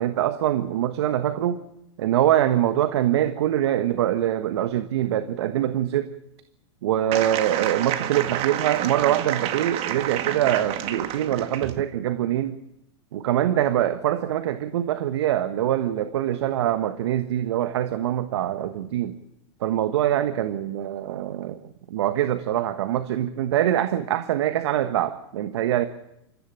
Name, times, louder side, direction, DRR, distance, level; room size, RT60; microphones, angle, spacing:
voice 1, 0.0-1.6 2.0-6.1 6.8-12.6 13.1-19.2 19.6-21.6 21.9-25.9, right 12 dB, 65° right, 10 dB, 1.3 m, -24 dB
sound 1, 7.1-11.8, right 11 dB, 40° right, 1.9 m, -29 dB
28.0 x 14.5 x 8.9 m, 0.84 s
hypercardioid pair, 105°, 15 cm